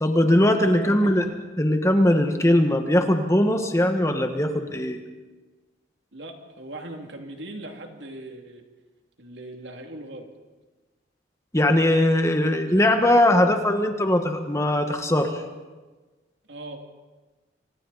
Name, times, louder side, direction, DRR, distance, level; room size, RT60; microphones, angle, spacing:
voice 1, 0.0-1.3 1.6-5.0 11.5-15.4, left 1 dB, 15° left, 5 dB, 1.5 m, -20 dB
voice 2, 0.5-1.1 6.1-8.6 9.2-10.3 16.5-16.8, right 1 dB, 85° right, 3 dB, 2.6 m, -39 dB
29.0 x 25.0 x 4.2 m, 1.3 s
head